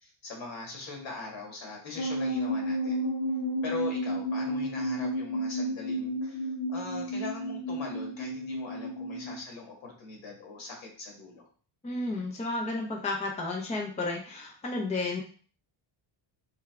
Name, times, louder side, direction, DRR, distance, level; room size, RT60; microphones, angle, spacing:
voice 1, 0.0-3.0 3.6-11.4, left 4 dB, 65° left, 0 dB, 1.6 m, -41 dB
sound 1, 2.0-9.4, equal, 90° left, 1.5 m, -32 dB
voice 2, 11.8-15.2, left 2 dB, 15° left, 0 dB, 0.6 m, -32 dB
3.5 x 3.4 x 3.4 m, 0.41 s
cardioid pair, 150°, 49 cm